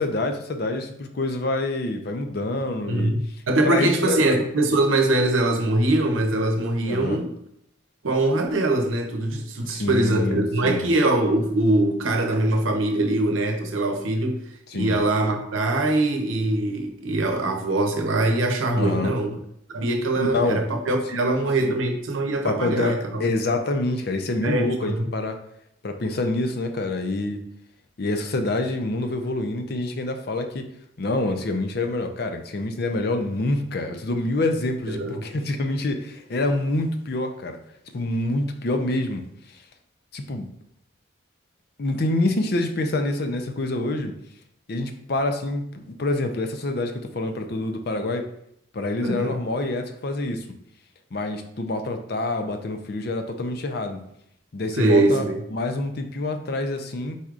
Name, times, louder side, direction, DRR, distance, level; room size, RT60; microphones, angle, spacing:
voice 1, 0.0-3.1 3.6-4.2 6.8-7.2 9.7-10.9 14.7-15.0 18.7-19.1 20.2-20.6 21.1-21.3 21.6-21.8 22.4-25.4 25.8-27.4 28.0-30.6 31.0-37.6 37.9-39.2 40.1-40.5 41.8-44.1 44.7-48.2 48.7-50.4 51.1-54.0 54.5-57.2, left 2 dB, 55° left, 6 dB, 0.5 m, -26 dB
voice 2, 2.9-3.2 3.5-7.3 8.0-14.4 14.7-19.4 19.7-23.3 24.4-25.1 34.9-35.2 49.0-49.4 54.8-55.4, right 2 dB, 90° right, 4 dB, 0.8 m, -22 dB
4.7 x 4.1 x 2.5 m, 0.74 s
head